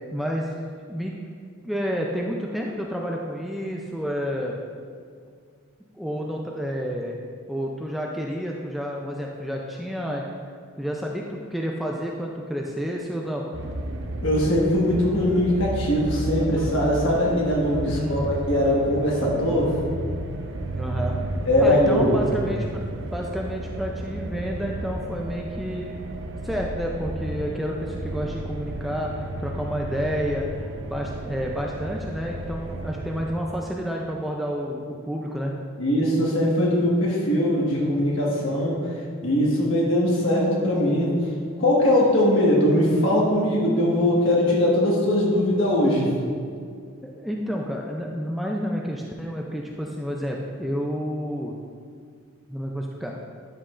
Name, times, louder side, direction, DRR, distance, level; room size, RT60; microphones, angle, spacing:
voice 1, 0.1-0.5 0.9-1.2 1.6-4.6 6.0-7.2 7.5-10.2 10.8-13.5 17.9-18.2 20.7-21.2 21.6-22.8 23.1-26.0 26.4-35.5 47.0-51.5 52.5-53.1, equal, ahead, -1 dB, 0.3 m, -30 dB
sound 1, 13.5-33.4, right 1 dB, 55° right, 0.5 m, -33 dB
voice 2, 14.2-19.7 21.4-22.2 35.8-38.7 39.2-41.1 41.6-46.1, left 1 dB, 60° left, -4 dB, 1.5 m, -21 dB
11.0 x 5.2 x 2.4 m, 2.1 s
head